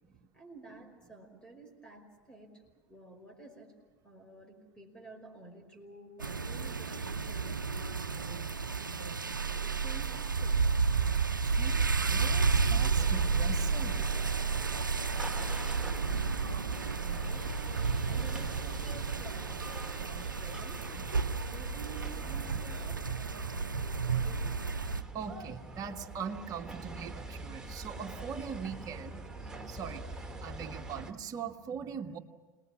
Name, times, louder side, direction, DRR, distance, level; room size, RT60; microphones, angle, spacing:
voice 1, 0.3-2.6 2.9-3.7 4.0-10.6 17.0-17.6 18.0-20.9 21.4-24.7, right 2 dB, 10° left, 3 dB, 5.4 m, -51 dB
sound 1, 6.2-25.0, right 5 dB, 90° right, 0.7 m, -31 dB
voice 2, 11.4-14.4 15.2-15.4 21.0-21.1 25.1-29.2 29.7-32.2, right 7 dB, 35° right, 4 dB, 1.7 m, -41 dB
sound 2, 13.0-31.1, right 3 dB, 5° right, 2.2 m, -44 dB
28.0 x 20.0 x 7.4 m, 1.3 s
figure-of-eight pair, 85°, 10 cm